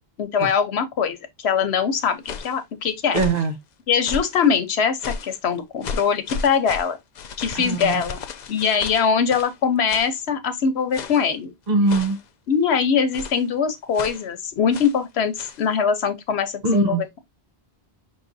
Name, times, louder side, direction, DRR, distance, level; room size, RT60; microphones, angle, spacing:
voice 1, 0.2-3.2 3.9-7.0 7.4-8.2 8.5-11.5 12.5-17.2, left 6 dB, 90° left, 1.1 m, -22 dB
sound 1, 2.0-2.6 3.1-3.5 4.0-4.5 5.0-5.4 5.8-9.6 9.9-10.2 10.9-11.3 11.9-12.3 13.1-13.5 13.9-14.3 14.7-15.0 15.4-15.6, left 5 dB, 55° left, 0.5 m, -34 dB
voice 2, 3.1-3.5 7.5-8.0 11.7-12.2 16.6-17.0, right 3 dB, 45° right, 1.0 m, -21 dB
5.8 x 3.3 x 2.6 m
omnidirectional pair, 1.1 m